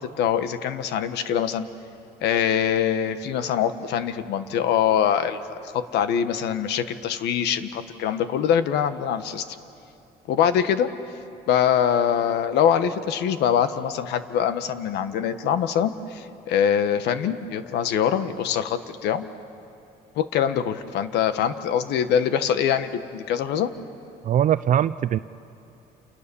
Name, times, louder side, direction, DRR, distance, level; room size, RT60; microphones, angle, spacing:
voice 1, 0.0-1.7 2.2-9.4 10.3-10.9 11.5-19.3 20.1-23.7, left 8 dB, 80° left, 11 dB, 1.4 m, -23 dB
voice 2, 24.2-25.2, right 10 dB, 50° right, 14 dB, 0.5 m, -21 dB
29.0 x 29.0 x 7.1 m, 2.8 s
cardioid pair, 110°, 17 cm